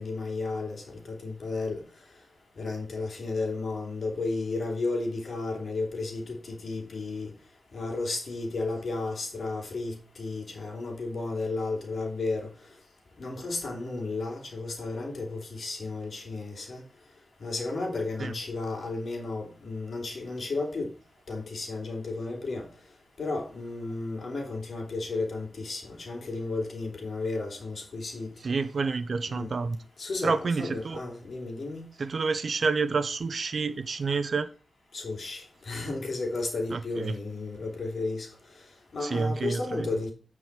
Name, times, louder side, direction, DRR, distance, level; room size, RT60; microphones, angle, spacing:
voice 1, 0.0-1.8 2.6-7.3 7.7-12.5 13.2-16.8 17.4-20.9 21.3-22.7 23.2-28.3 29.3-29.5 30.0-31.9 34.9-38.3 38.9-40.1, left 3 dB, 70° left, 2.8 m, -33 dB
voice 2, 28.4-29.8 30.2-31.0 32.0-34.5 36.7-37.1 39.0-39.9, right 4 dB, 65° right, 0.8 m, -29 dB
9.2 x 4.9 x 4.6 m
cardioid pair, 55°, 0 cm